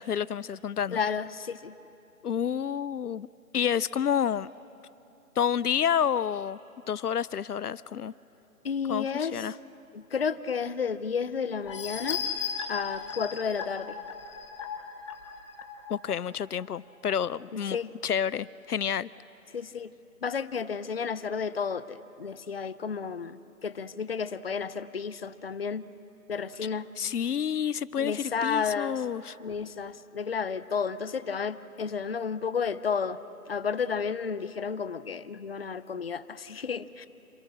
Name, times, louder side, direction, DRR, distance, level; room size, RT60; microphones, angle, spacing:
voice 1, 0.0-1.0 2.2-3.3 3.5-4.5 5.4-6.6 6.9-8.1 8.9-9.5 15.9-17.8 18.0-19.1 27.0-29.3, left 8 dB, 85° left, 20 dB, 0.7 m, -29 dB
voice 2, 0.9-1.7 8.6-9.5 9.9-12.2 12.7-14.0 17.5-17.9 19.5-19.9 20.2-25.8 26.3-26.9 28.0-29.1 29.4-33.2 33.5-37.1, left 6 dB, 40° left, 15 dB, 0.7 m, -32 dB
sound 1, 11.7-16.1 16.6-16.7 17.1-17.2, left 6 dB, 20° left, 1.3 m, -36 dB
27.5 x 26.5 x 6.3 m, 2.8 s
figure-of-eight pair, 165°, 45 cm